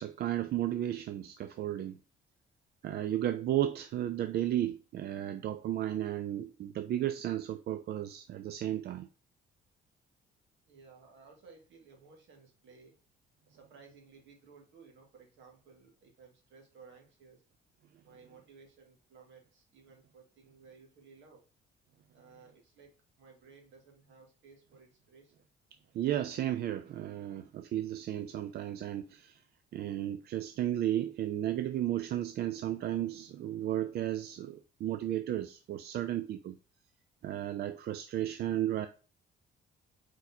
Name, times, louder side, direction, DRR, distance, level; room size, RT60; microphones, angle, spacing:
voice 1, 0.0-2.0 2.8-9.1 25.9-29.4 29.7-36.6 37.2-38.9, right 12 dB, 55° right, 0.4 m, -34 dB
voice 2, 10.7-12.9 13.5-17.4 18.0-21.4 22.1-25.5, right 5 dB, 75° right, 1.9 m, -58 dB
4.7 x 4.0 x 2.7 m
cardioid pair, 105°, 19 cm